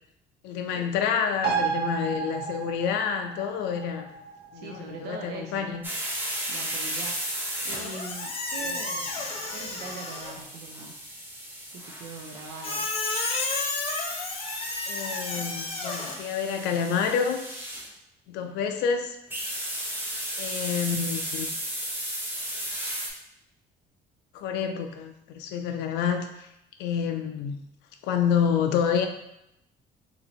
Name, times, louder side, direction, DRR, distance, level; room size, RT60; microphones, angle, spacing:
voice 1, 0.4-4.1 4.5-5.8 8.7-8.8 14.9-17.4 18.3-19.2 20.4-21.5 24.3-26.5 26.8-27.6 28.0-29.1, left 7 dB, 90° left, 5 dB, 0.4 m, -28 dB
sound 1, 1.4-8.4 8.7-8.8, right 6 dB, 65° right, 0.9 m, -34 dB
voice 2, 4.5-5.7 6.5-7.3 7.6-11.1 11.7-12.9 18.4-18.7, right 4 dB, 80° right, 2 dB, 0.5 m, -42 dB
sound 2, 5.8-17.9 19.3-23.1, right 1 dB, 10° right, 0.8 m, -35 dB
Squeak, 7.7-10.4 12.6-16.1, left 3 dB, 35° left, 0.7 m, -32 dB
2.9 x 2.7 x 4.1 m, 0.83 s
cardioid pair, 110°, 17 cm